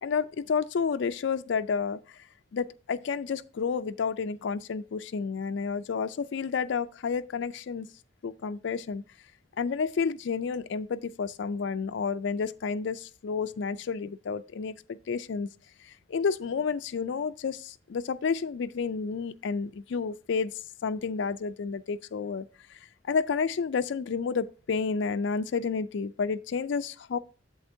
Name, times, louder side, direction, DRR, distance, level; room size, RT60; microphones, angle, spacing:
voice 1, 0.0-2.0 2.5-7.9 8.2-9.0 9.6-15.5 16.1-20.5 20.8-22.5 23.1-27.2, left 5 dB, 65° left, 0.4 m, -30 dB
7.9 x 7.4 x 2.7 m
head